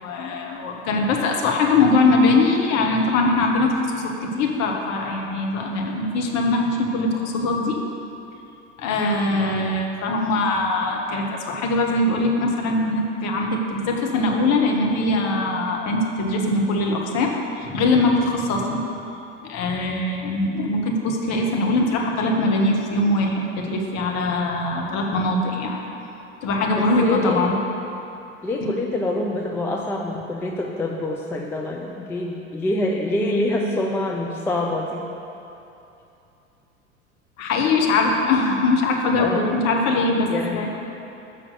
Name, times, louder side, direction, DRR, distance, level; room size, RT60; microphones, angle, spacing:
voice 1, 0.0-7.8 8.8-18.8 19.4-25.8 26.4-27.5 28.6-28.7 37.4-40.7, left 2 dB, 45° left, 1 dB, 1.2 m, -22 dB
voice 2, 26.7-27.5 28.4-35.1 39.2-39.5 40.3-40.7, left 2 dB, 5° left, 0 dB, 0.4 m, -25 dB
6.8 x 5.6 x 6.5 m, 2.8 s
figure-of-eight pair, 80°, 39 cm